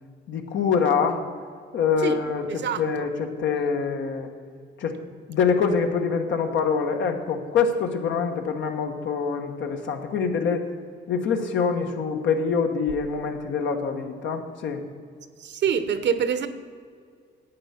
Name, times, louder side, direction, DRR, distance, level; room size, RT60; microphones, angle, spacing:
voice 1, 0.3-1.2 1.7-4.3 4.8-5.0 5.3-10.7 11.1-14.8, left 5 dB, 70° left, 5 dB, 1.4 m, -25 dB
voice 2, 2.5-3.1 15.4-16.5, right 7 dB, 65° right, 12 dB, 0.9 m, -26 dB
11.5 x 8.5 x 5.8 m, 2.1 s
cardioid pair, 90°, 20 cm